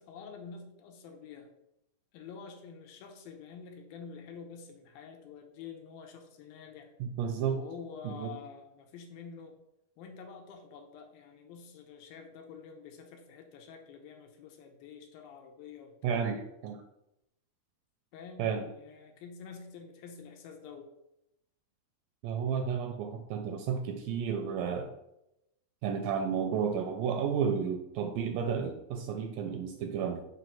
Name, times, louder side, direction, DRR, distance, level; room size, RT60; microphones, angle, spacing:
voice 1, 0.0-1.5 2.1-6.9 7.5-9.6 10.0-16.3 18.1-20.9, left 6 dB, 80° left, 4 dB, 2.6 m, -48 dB
voice 2, 7.0-7.6 8.0-8.4 16.0-16.8 18.4-18.7 22.2-24.9 25.8-30.2, right 7 dB, 80° right, 5 dB, 2.0 m, -32 dB
5.9 x 3.1 x 5.7 m, 0.84 s
omnidirectional pair, 4.3 m